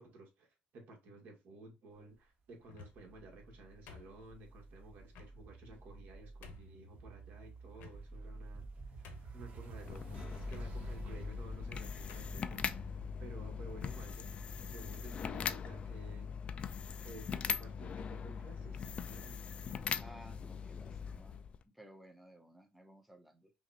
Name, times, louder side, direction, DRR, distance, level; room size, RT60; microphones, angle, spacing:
voice 1, 0.0-9.1 9.3-14.3 14.7-16.3 17.0-19.5, right 2 dB, 65° right, 1.8 m, -54 dB
sound 1, 2.6-3.2 3.9-4.5 5.1-5.3 5.9-6.0 6.4-6.8 7.7-8.3 8.7-8.8 9.0-9.5 10.5-10.7 11.5-11.7 12.1-12.4, left 6 dB, 85° left, 1.0 m, -54 dB
sound 2, 2.9-16.1, right 3 dB, 45° right, 1.2 m, -51 dB
sound 3, 9.7-21.6, left 6 dB, 35° left, 0.4 m, -41 dB
voice 2, 20.0-21.4 21.7-23.5, right 1 dB, ahead, 0.7 m, -57 dB
5.6 x 2.5 x 2.8 m
cardioid pair, 135°, 3 cm